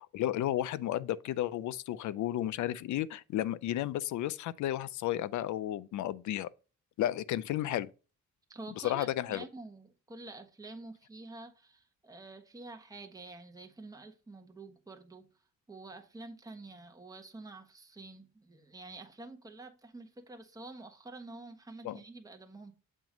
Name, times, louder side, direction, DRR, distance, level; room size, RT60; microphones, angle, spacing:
voice 1, 0.0-6.5 7.0-7.9 8.8-9.4 21.8-22.0, left 13 dB, 75° left, 0.6 m, -33 dB
voice 2, 8.5-15.3 15.7-22.7, right 2 dB, 10° right, 1.2 m, -48 dB
7.5 x 3.0 x 5.1 m
cardioid pair, 90°, 30 cm